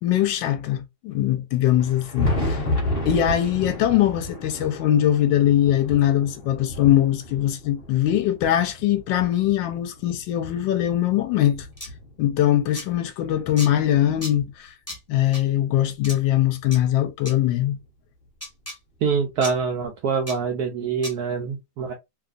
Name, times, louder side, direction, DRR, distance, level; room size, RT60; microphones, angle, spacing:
voice 1, 0.0-2.7 3.0-11.7 12.2-14.7 15.1-17.8, left 12 dB, 75° left, 1.2 m, -21 dB
Thunder, 1.6-10.2 10.9-12.6 13.7-13.8 14.4-14.5 16.3-16.4 17.8-17.9 19.5-19.6, left 1 dB, 35° left, 1.2 m, -31 dB
sound 1, 11.8-11.9 12.7-12.9 13.6-13.7 14.2-14.3 14.9-15.0 15.3-15.4 16.0-16.2 16.7-16.8 17.2-17.3 18.4-18.8 19.4-19.5 20.3-20.4 21.0-21.1, left 1 dB, 20° left, 0.4 m, -34 dB
voice 2, 19.0-21.9, right 5 dB, 75° right, 0.9 m, -25 dB
3.1 x 2.4 x 2.4 m
omnidirectional pair, 2.1 m